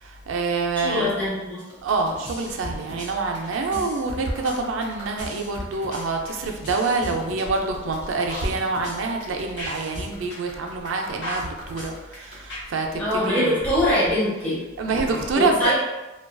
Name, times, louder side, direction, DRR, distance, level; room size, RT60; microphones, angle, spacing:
voice 1, 0.0-1.2 1.8-13.5 14.8-15.7, right 3 dB, 85° right, 3 dB, 0.4 m, -26 dB
voice 2, 0.8-1.6 3.7-3.8 13.0-14.6 15.3-15.8, left 1 dB, 10° left, -9 dB, 0.8 m, -23 dB
sound 1, 1.6-12.6, equal, 65° left, 1.0 m, -36 dB
2.4 x 2.2 x 2.2 m, 1.0 s
head